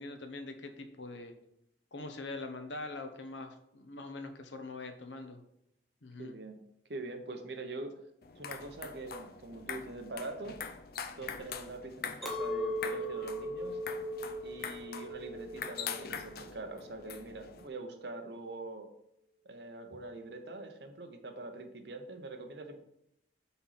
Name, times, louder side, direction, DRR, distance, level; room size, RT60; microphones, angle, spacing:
voice 1, 0.0-1.3 1.9-5.4 6.0-6.3, left 2 dB, 85° left, 6 dB, 0.9 m, -43 dB
voice 2, 6.2-6.6 6.9-7.9 8.4-10.6 11.2-13.8 14.4-18.9 19.4-22.8, right 2 dB, 70° right, 6 dB, 1.0 m, -43 dB
sound 1, 8.2-17.7, left 6 dB, 55° left, 0.5 m, -44 dB
Chink clink, 12.2-17.6, equal, ahead, 0.8 m, -39 dB
5.5 x 4.3 x 5.7 m, 0.78 s
head